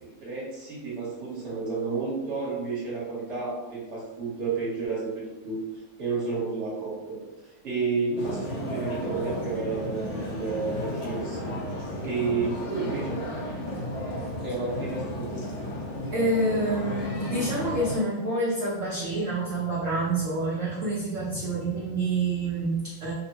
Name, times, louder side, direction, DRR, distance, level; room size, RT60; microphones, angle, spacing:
voice 1, 0.0-5.6 6.0-11.5 12.0-13.2 14.4-15.4, right 4 dB, 40° right, -6 dB, 1.2 m, -31 dB
sound 1, 8.2-18.0, equal, 80° left, 1.4 m, -33 dB
voice 2, 16.1-23.1, right 2 dB, 75° right, -6 dB, 0.7 m, -27 dB
3.5 x 2.1 x 2.8 m, 1.1 s
omnidirectional pair, 2.1 m